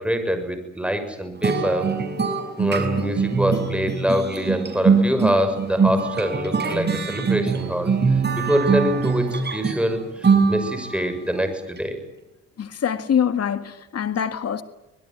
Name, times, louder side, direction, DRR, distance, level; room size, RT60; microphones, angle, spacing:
voice 1, 0.0-1.9 2.6-12.0, equal, 5° right, 6.5 m, -25 dB
sound 1, 1.4-11.1, right 5 dB, 35° right, 6.0 m, -23 dB
voice 2, 12.6-14.6, left 8 dB, 55° left, 2.0 m, -24 dB
25.0 x 21.0 x 9.3 m
cardioid pair, 90°, 30 cm